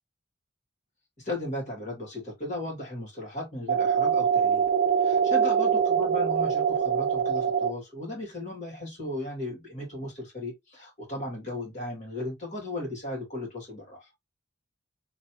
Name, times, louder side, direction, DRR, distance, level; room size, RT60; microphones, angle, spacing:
voice 1, 1.2-4.7 5.0-14.1, left 1 dB, 40° left, 2.0 m, -36 dB
sound 1, 3.7-7.7, right 7 dB, 45° right, 0.6 m, -24 dB
3.2 x 2.8 x 2.8 m
head